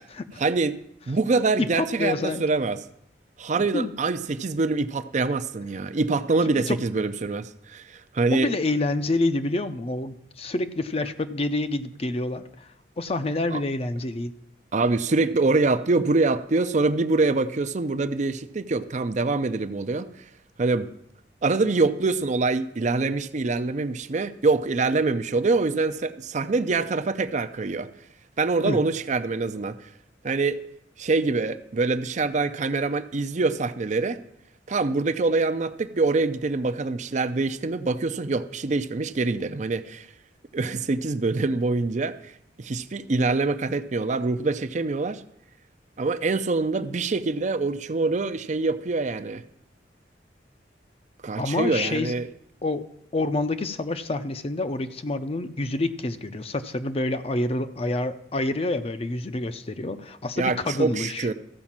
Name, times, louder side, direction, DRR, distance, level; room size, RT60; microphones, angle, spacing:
voice 1, 0.4-0.8 1.1-2.8 3.4-8.5 13.5-13.6 14.7-20.1 20.6-20.9 21.4-27.9 28.4-29.9 30.2-30.6 31.0-34.2 34.7-40.1 40.5-42.3 42.6-45.2 46.0-49.4 51.2-52.3 60.4-61.3, right 3 dB, 40° right, 12 dB, 0.5 m, -25 dB
voice 2, 1.6-2.4 3.7-3.9 6.5-6.8 8.3-12.7 13.0-14.3 28.7-28.8 51.4-52.1 52.6-52.8 53.1-61.3, left 2 dB, 35° left, 11 dB, 0.6 m, -27 dB
14.0 x 5.2 x 7.3 m, 0.73 s
head